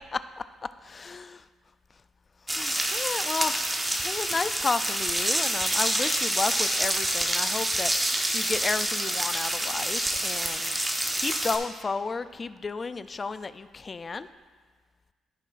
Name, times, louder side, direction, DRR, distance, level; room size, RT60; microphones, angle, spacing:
voice 1, 0.8-1.4 2.5-10.8 11.1-14.3, left 4 dB, 35° left, 13 dB, 0.3 m, -32 dB
sound 1, 2.5-11.6, right 1 dB, 15° right, 1.0 m, -27 dB
15.0 x 6.1 x 2.5 m, 1.4 s
cardioid pair, 90°, 0 cm